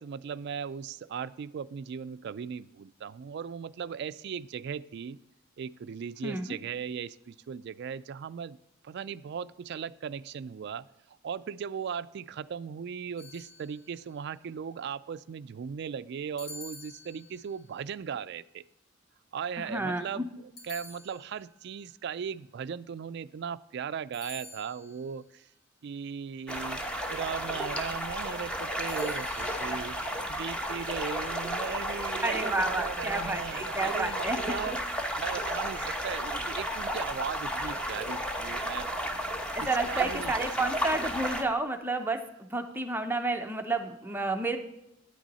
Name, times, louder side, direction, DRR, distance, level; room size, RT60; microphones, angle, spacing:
voice 1, 0.0-5.2 5.6-8.6 8.8-18.6 19.3-20.3 20.6-25.5 25.8-26.8 27.1-30.0 30.3-34.8 35.2-38.9 39.6-40.5, right 7 dB, 55° right, 14 dB, 0.3 m, -38 dB
voice 2, 6.2-6.6 19.6-20.2 32.2-34.6 35.8-36.0 39.5-44.6, right 2 dB, 10° right, 6 dB, 0.6 m, -31 dB
sound 1, 13.2-14.1 16.4-17.6 20.6-21.6 24.1-25.1 28.9-29.7, left 2 dB, 75° left, 3.5 m, -48 dB
sound 2, 26.5-41.4, equal, 5° left, 1.0 m, -33 dB
9.8 x 9.0 x 4.1 m, 0.86 s
head